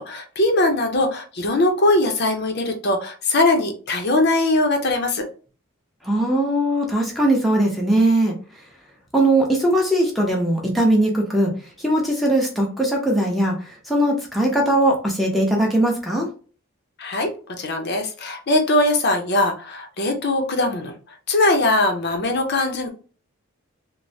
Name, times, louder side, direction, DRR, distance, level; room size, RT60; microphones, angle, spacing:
voice 1, 0.0-5.2 17.0-22.9, left 2 dB, 45° left, 4 dB, 0.5 m, -21 dB
voice 2, 6.0-8.3 9.1-11.5 11.8-16.3, right 1 dB, ahead, -2 dB, 0.5 m, -20 dB
3.1 x 2.0 x 2.6 m, 0.37 s
head